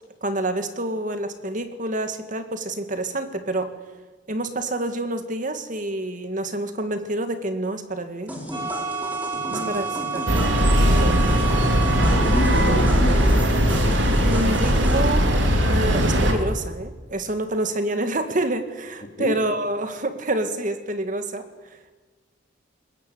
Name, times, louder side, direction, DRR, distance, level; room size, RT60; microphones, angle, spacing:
voice 1, 0.2-3.7 4.3-8.3 9.5-9.9 10.1-10.3 14.2-15.2 15.7-21.5, right 1 dB, 40° right, 8 dB, 2.0 m, -27 dB
sound 1, 8.3-14.9, equal, 10° right, 4.1 m, -35 dB
sound 2, 8.5-12.8, right 4 dB, 25° right, 6.5 m, -30 dB
sound 3, 10.3-16.3, equal, 70° right, 3.3 m, -19 dB
voice 2, 11.9-14.0 19.0-19.4, left 1 dB, 45° left, 5 dB, 2.9 m, -30 dB
23.0 x 20.5 x 8.5 m, 1.3 s
head